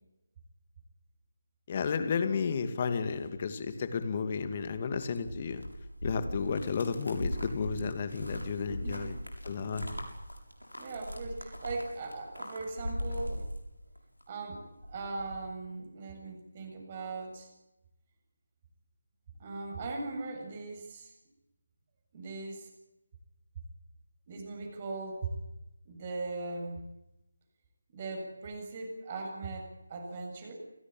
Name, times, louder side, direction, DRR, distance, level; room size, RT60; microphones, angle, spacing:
voice 1, 1.7-5.6 6.0-9.2 9.4-9.9, left 5 dB, 30° left, 10 dB, 2.4 m, -32 dB
sound 1, 4.3-14.2 14.5-15.5, equal, 90° left, 7.3 m, -40 dB
voice 2, 8.8-9.1 10.8-13.4 14.3-17.5 19.4-21.1 22.1-22.7 24.3-25.3 25.9-26.8 27.9-30.5, right 3 dB, 30° right, 2 dB, 7.5 m, -39 dB
28.5 x 18.0 x 8.9 m, 0.92 s
figure-of-eight pair, 155°, 0 cm